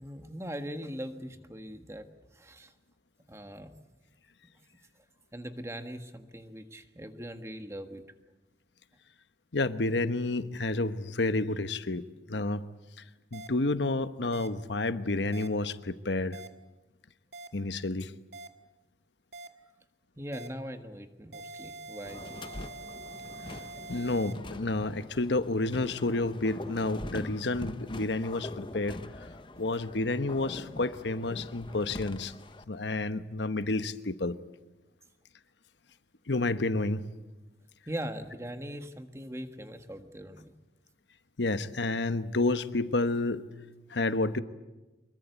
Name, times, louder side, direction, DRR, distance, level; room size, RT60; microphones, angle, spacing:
voice 1, 0.0-2.1 2.3-2.7 3.3-3.8 5.3-8.0 20.2-22.6 31.7-31.8 37.9-40.5, equal, 15° right, 7 dB, 1.5 m, -41 dB
voice 2, 9.5-12.6 13.3-16.4 17.5-18.1 23.9-29.0 29.6-32.3 32.7-34.4 36.3-37.0 41.4-43.4 43.9-44.4, left 2 dB, 80° left, 12 dB, 1.1 m, -30 dB
sound 1, 13.3-13.5 14.3-14.5 15.3-15.5 16.3-16.5 17.3-17.5 18.3-18.5 19.3-19.5 20.3-20.5 21.3-24.3, right 3 dB, 65° right, 2.0 m, -44 dB
sound 2, 22.1-32.6, left 1 dB, 25° left, 0.8 m, -43 dB
25.0 x 22.5 x 8.3 m, 1.1 s
head